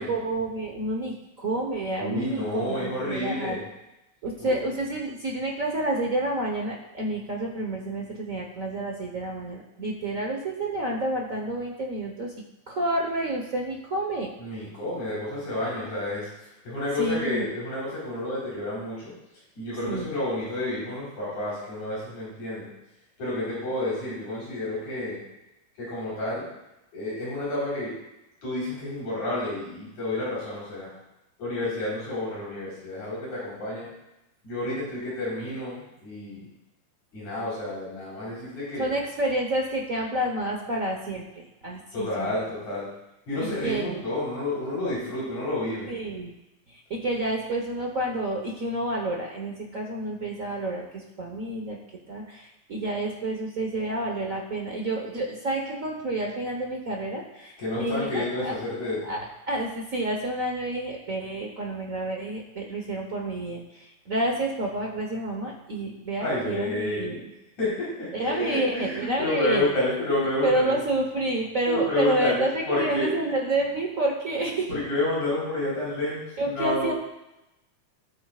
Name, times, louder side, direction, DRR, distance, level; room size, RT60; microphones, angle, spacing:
voice 1, 0.0-3.6 4.2-12.3 12.7-14.3 17.0-17.5 19.9-20.2 38.8-42.4 43.6-44.0 45.9-46.3 46.7-51.8 52.1-58.5 59.0-67.3 68.1-69.7 70.2-74.8 76.4-76.9, right 1 dB, 60° right, -1 dB, 0.8 m, -29 dB
voice 2, 2.0-3.6 4.4-4.6 14.4-16.3 16.6-19.1 19.6-22.7 23.2-25.2 25.8-26.5 26.9-27.9 28.4-30.9 31.4-33.9 34.4-36.4 37.1-38.9 41.9-42.9 43.3-45.9 57.6-59.1 66.2-67.2 67.6-70.7 71.7-73.1 74.7-76.9, left 1 dB, 70° left, -8 dB, 5.8 m, -30 dB
18.5 x 8.5 x 2.5 m, 0.93 s
omnidirectional pair, 3.5 m